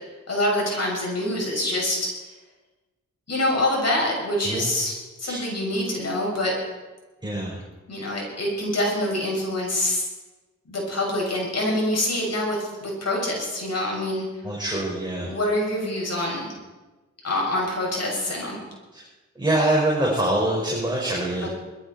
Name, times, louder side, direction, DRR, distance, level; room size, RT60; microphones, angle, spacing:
voice 1, 0.3-2.1 3.3-4.9 5.2-6.5 7.9-10.1 10.7-14.3 15.2-16.5 17.2-18.6 21.4-21.5, left 1 dB, 55° left, -2 dB, 6.4 m, -25 dB
voice 2, 7.2-7.6 14.4-15.3 18.9-19.0 19.4-21.5, right 1 dB, 15° right, -5 dB, 5.7 m, -24 dB
20.5 x 13.5 x 4.5 m, 1.2 s
cardioid pair, 55°, 30 cm